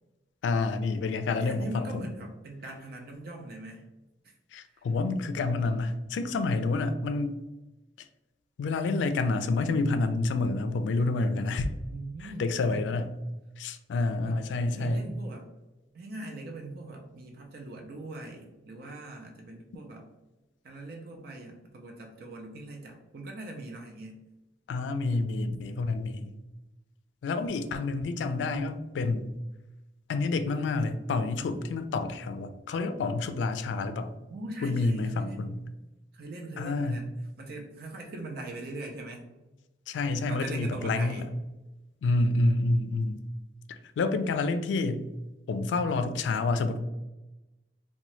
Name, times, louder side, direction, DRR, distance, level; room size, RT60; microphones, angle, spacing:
voice 1, 0.4-2.1 4.5-7.4 8.6-11.7 12.2-13.1 13.6-15.1 24.7-26.3 27.2-29.3 30.1-34.1 34.6-35.6 36.6-37.0 39.9-41.3 42.0-43.2 44.0-45.1 45.5-46.8, left 3 dB, 90° left, 9 dB, 0.3 m, -28 dB
voice 2, 1.4-3.8 4.7-4.8 11.9-12.9 14.2-15.5 15.9-20.1 20.6-24.2 34.3-35.6 36.1-37.1 37.4-39.3 40.3-41.3, right 2 dB, 60° right, 1 dB, 0.4 m, -41 dB
2.7 x 2.2 x 3.0 m, 1.0 s
head